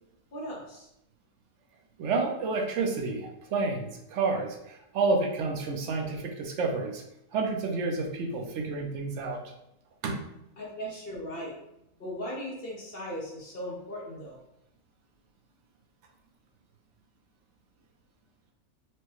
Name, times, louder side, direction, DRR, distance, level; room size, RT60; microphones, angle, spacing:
voice 1, 0.3-0.9 10.6-11.6 12.0-14.4, equal, 50° left, -4 dB, 0.8 m, -38 dB
voice 2, 2.0-7.0 7.3-9.4 10.0-10.2, right 3 dB, 60° right, 2 dB, 0.8 m, -29 dB
4.6 x 2.1 x 3.0 m, 0.83 s
omnidirectional pair, 1.5 m